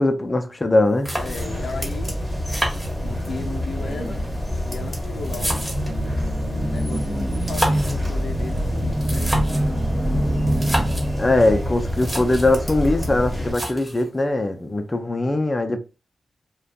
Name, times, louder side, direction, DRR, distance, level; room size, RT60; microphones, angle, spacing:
voice 1, 0.0-1.1 11.2-15.8, left 2 dB, 30° left, 0.5 m, -21 dB
sound 1, 0.7-0.8 1.0-1.7 2.5-3.4 4.3-6.0 7.3-8.1 8.9-9.7 10.5-11.1 11.6-11.7 11.9-12.6 13.5-14.1, equal, 5° right, 1.4 m, -29 dB
voice 2, 1.1-2.1 3.0-4.2 4.6-9.3, left 4 dB, 80° left, 0.5 m, -36 dB
sound 2, 1.1-13.5, equal, 10° left, 1.5 m, -28 dB
sound 3, 5.3-11.6, right 1 dB, 35° right, 1.0 m, -26 dB
2.5 x 2.3 x 3.4 m
cardioid pair, 65°, 0 cm